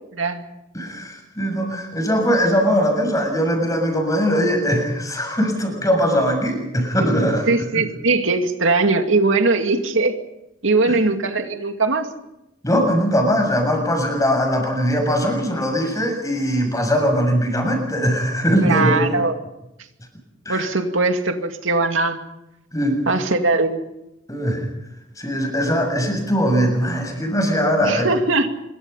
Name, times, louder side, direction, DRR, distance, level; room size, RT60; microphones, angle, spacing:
voice 1, 0.1-0.4 7.5-10.2 10.6-12.1 18.6-19.4 20.5-22.2 23.1-23.8 27.8-28.5, right 3 dB, 85° right, 5 dB, 2.3 m, -20 dB
voice 2, 0.7-7.5 7.7-7.9 10.8-11.0 12.6-19.1 20.5-20.7 22.7-23.0 24.3-24.7 25.2-28.1, equal, 20° left, 3 dB, 7.0 m, -20 dB
26.0 x 23.5 x 5.7 m, 0.91 s
head